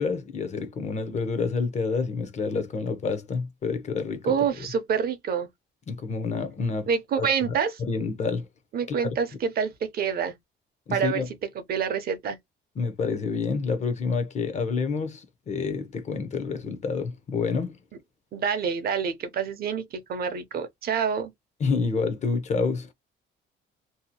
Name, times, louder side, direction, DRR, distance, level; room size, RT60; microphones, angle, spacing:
voice 1, 0.0-4.7 5.9-6.9 7.2-8.5 8.9-9.2 10.9-11.3 12.8-17.8 21.6-22.9, left 4 dB, 35° left, 0.6 m, -28 dB
voice 2, 4.2-5.5 6.9-7.8 8.7-10.3 10.9-11.2 11.7-12.4 18.3-21.3, right 7 dB, 50° right, 0.6 m, -27 dB
2.7 x 2.4 x 2.7 m
cardioid pair, 160°, 21 cm